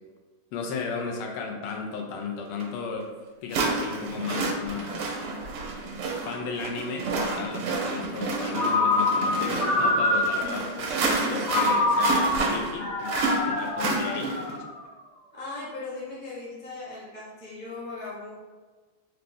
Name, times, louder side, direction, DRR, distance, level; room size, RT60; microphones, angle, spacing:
voice 1, 0.5-3.1 3.4-5.3 6.3-14.3, left 5 dB, 85° left, 2 dB, 1.5 m, -34 dB
sound 1, 2.6-2.7 3.5-14.6, right 3 dB, 80° right, 1.5 m, -30 dB
Ringtone, 8.5-10.6 11.5-14.8, left 2 dB, 55° left, 1.0 m, -25 dB
voice 2, 15.3-18.3, left 3 dB, 10° left, -8 dB, 0.4 m, -38 dB
4.2 x 2.6 x 3.2 m, 1.3 s
omnidirectional pair, 2.4 m